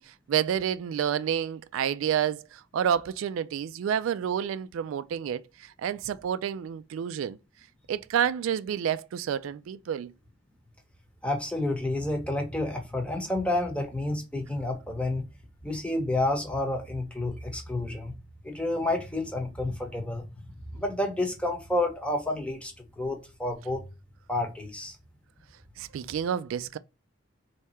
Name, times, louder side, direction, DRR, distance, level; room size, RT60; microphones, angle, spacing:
voice 1, 0.0-7.4 7.9-10.1 25.8-26.8, right 9 dB, 90° right, 0.3 m, -29 dB
voice 2, 11.2-15.2 15.6-18.1 18.4-20.2 20.7-23.8 24.3-25.0, left 2 dB, 5° left, 0.9 m, -30 dB
3.4 x 2.8 x 4.2 m
head